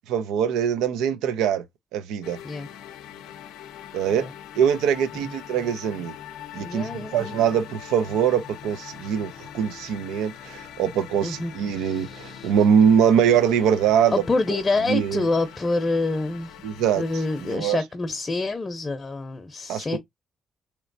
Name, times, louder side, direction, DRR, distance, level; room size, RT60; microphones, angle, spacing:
voice 1, 0.1-1.6 1.9-2.4 3.9-4.3 4.6-6.1 6.5-14.2 14.5-14.6 14.9-15.2 16.6-17.0 17.4-17.8 19.7-20.0, right 8 dB, 90° right, 0.5 m, -22 dB
sound 1, 2.2-17.6, left 10 dB, 90° left, 0.5 m, -42 dB
voice 2, 6.6-7.4 11.2-12.5 14.1-16.6 16.9-20.0, left 3 dB, 35° left, 0.6 m, -27 dB
3.1 x 3.0 x 2.6 m
supercardioid pair, 65°, 0 cm